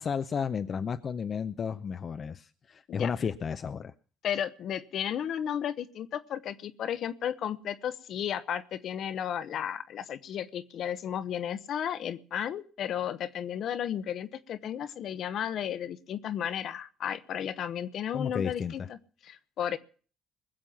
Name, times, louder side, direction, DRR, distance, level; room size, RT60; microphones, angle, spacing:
voice 1, 0.0-3.9 18.1-18.9, left 6 dB, 45° left, 10 dB, 0.7 m, -33 dB
voice 2, 4.2-19.0 19.2-19.8, left 9 dB, 60° left, 14 dB, 1.0 m, -34 dB
20.5 x 7.5 x 7.2 m, 0.41 s
supercardioid pair, 65°, 0 cm